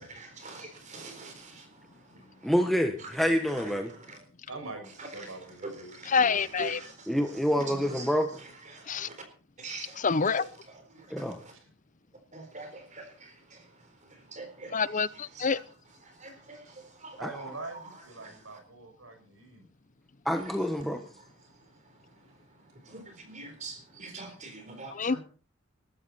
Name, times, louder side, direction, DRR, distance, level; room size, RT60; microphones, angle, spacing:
voice 1, 0.0-1.7 2.4-2.5 3.6-4.2 5.2-5.3 5.6-6.3 6.6-7.1 7.7-8.1 8.7-9.2 9.6-10.1 10.4-10.5 10.9-11.5 12.3-13.6 14.1-14.9 15.3-15.6 16.0-17.2 18.2-18.3 22.9-25.2, right 3 dB, 35° right, 4.0 m, -44 dB
voice 2, 2.4-3.9 7.1-8.3 11.1-11.4 17.2-17.3 20.2-21.0, equal, ahead, 1.4 m, -27 dB
voice 3, 4.5-6.9 8.8-8.9 11.6-11.7 14.1-14.2 14.7-14.8 17.2-19.7 22.9-23.0 23.9-24.0, right 2 dB, 85° right, 6.5 m, -44 dB
voice 4, 6.1-6.8 8.9-9.1 10.0-10.4 14.7-15.6 24.9-25.2, left 5 dB, 40° left, 0.7 m, -27 dB
21.0 x 12.5 x 4.3 m
head